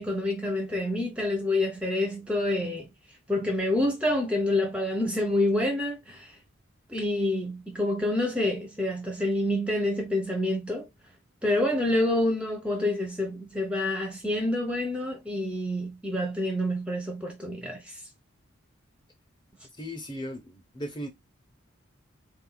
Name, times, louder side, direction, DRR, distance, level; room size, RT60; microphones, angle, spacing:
voice 1, 0.0-2.9 3.3-6.3 6.9-10.9 11.4-18.0, left 1 dB, 5° right, 0.8 m, -27 dB
voice 2, 19.8-21.1, equal, 20° left, 1.1 m, -37 dB
4.2 x 2.7 x 4.0 m
head